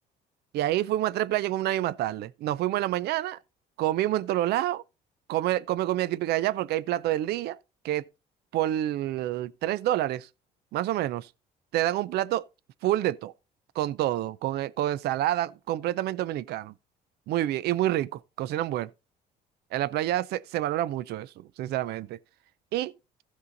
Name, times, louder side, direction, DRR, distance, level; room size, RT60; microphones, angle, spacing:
voice 1, 0.5-3.4 3.8-4.8 5.3-7.6 7.8-8.1 8.5-10.3 10.7-11.3 11.7-12.4 12.8-13.3 13.8-16.7 17.3-18.9 19.7-22.2 22.7-22.9, right 14 dB, 75° right, 0.5 m, -28 dB
15.5 x 5.5 x 4.0 m
cardioid pair, 110°, 17 cm